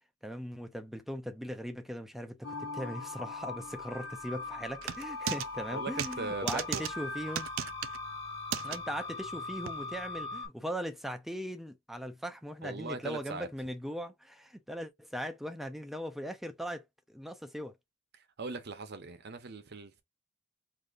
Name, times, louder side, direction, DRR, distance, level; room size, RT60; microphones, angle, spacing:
voice 1, 0.2-7.5 8.6-17.8, equal, ahead, 0.5 m, -39 dB
sound 1, 2.4-10.5, left 3 dB, 55° left, 2.5 m, -40 dB
sound 2, 4.8-5.5 6.0-6.2 6.5-6.9 7.4-8.0 8.5-8.8 9.7-9.8, right 9 dB, 65° right, 0.4 m, -35 dB
voice 2, 5.7-6.8 12.6-13.5 18.2-20.0, right 3 dB, 50° right, 0.8 m, -40 dB
5.0 x 2.7 x 2.5 m
head